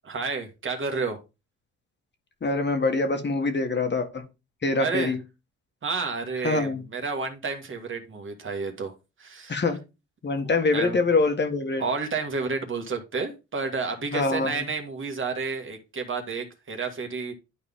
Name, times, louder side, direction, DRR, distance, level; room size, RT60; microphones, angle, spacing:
voice 1, 0.0-1.2 4.8-5.1 5.8-8.9 9.2-9.6 10.7-11.0 11.8-17.3, right 4 dB, 40° right, 4 dB, 1.9 m, -30 dB
voice 2, 2.4-4.2 4.6-5.2 6.4-6.8 9.5-9.8 10.2-11.8 14.1-14.7, left 3 dB, 35° left, 6 dB, 1.6 m, -24 dB
11.5 x 4.2 x 3.7 m, 0.28 s
cardioid pair, 90°, 30 cm